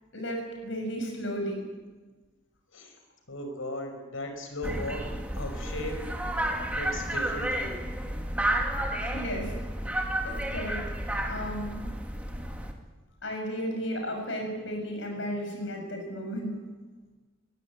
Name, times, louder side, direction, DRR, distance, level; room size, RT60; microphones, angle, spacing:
voice 1, 0.1-1.6 9.0-9.5 10.2-10.9 11.2-11.9 13.2-16.6, equal, 65° left, 2 dB, 6.8 m, -34 dB
voice 2, 3.3-6.0 6.7-7.8, left 1 dB, 85° left, 6 dB, 5.5 m, -37 dB
sound 1, 4.6-12.7, right 1 dB, 5° right, 2.0 m, -31 dB
22.5 x 18.0 x 8.7 m, 1.3 s
head